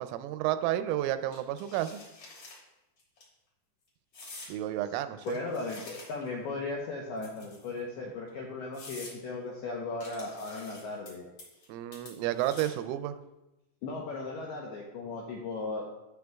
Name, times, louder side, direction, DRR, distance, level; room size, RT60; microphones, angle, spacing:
voice 1, 0.0-2.0 4.5-5.4 11.7-13.2, right 13 dB, 85° right, 11 dB, 3.1 m, -31 dB
sound 1, 1.3-2.6 3.0-3.2 4.1-4.5 5.2-6.4 7.2-7.8 8.3-8.4 8.7-9.2 10.0-11.1 11.4-11.7 11.9-12.9, left 2 dB, 40° left, 3.6 m, -48 dB
voice 2, 5.2-11.3 13.8-15.8, left 3 dB, 80° left, -2 dB, 2.3 m, -37 dB
15.5 x 6.3 x 2.3 m, 0.96 s
omnidirectional pair, 5.7 m